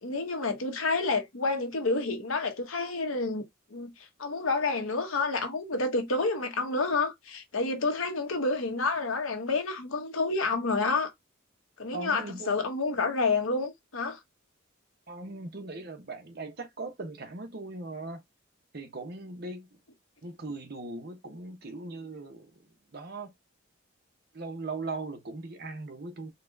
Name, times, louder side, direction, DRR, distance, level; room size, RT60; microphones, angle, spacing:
voice 1, 0.0-3.4 3.7-3.9 4.2-11.1 11.8-14.2, left 3 dB, 85° left, 1.0 m, -29 dB
voice 2, 11.9-12.6 15.1-18.2 18.7-19.8 20.2-23.3 24.3-26.3, right 3 dB, 50° right, 0.9 m, -39 dB
4.1 x 2.3 x 2.6 m
head